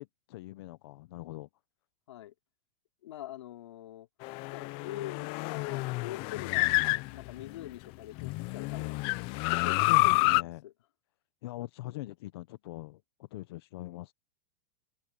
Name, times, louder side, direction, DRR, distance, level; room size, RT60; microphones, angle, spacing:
voice 1, 0.0-1.5 9.5-10.6 11.4-14.1, left 18 dB, 60° left, 0.9 m, -42 dB
voice 2, 3.0-4.1 4.5-9.0 9.5-10.7, left 13 dB, 85° left, 3.2 m, -44 dB
sound 1, 4.2-7.7 8.2-10.4, left 23 dB, 40° left, 0.6 m, -29 dB
open air
supercardioid pair, 155°, 14 cm